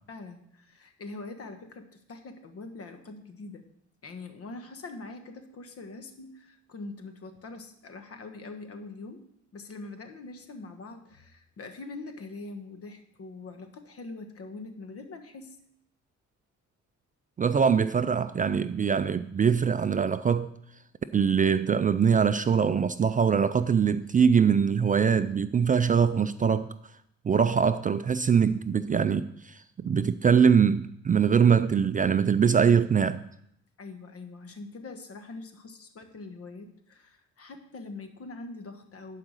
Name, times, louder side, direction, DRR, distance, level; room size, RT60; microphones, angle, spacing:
voice 1, 0.1-3.7 4.0-15.6 33.8-39.2, left 3 dB, 50° left, 7 dB, 1.4 m, -43 dB
voice 2, 17.4-20.5 21.1-26.7 27.2-33.2, right 6 dB, 30° right, 12 dB, 0.4 m, -23 dB
11.5 x 4.9 x 6.4 m, 0.72 s
cardioid pair, 90°, 30 cm